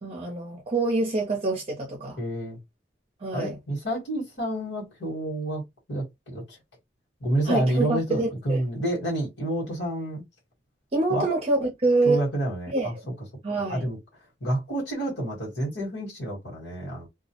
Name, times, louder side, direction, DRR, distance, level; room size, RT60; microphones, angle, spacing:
voice 1, 0.0-2.2 3.2-3.6 7.5-8.6 10.9-12.3 12.7-12.9 13.4-13.9, right 2 dB, 35° right, 0.6 m, -26 dB
voice 2, 2.2-2.6 3.3-5.6 5.9-6.6 7.2-10.2 11.1-11.3 12.0-12.9 13.7-14.0 14.4-17.1, right 1 dB, 70° left, 1.2 m, -29 dB
2.3 x 2.0 x 2.7 m
head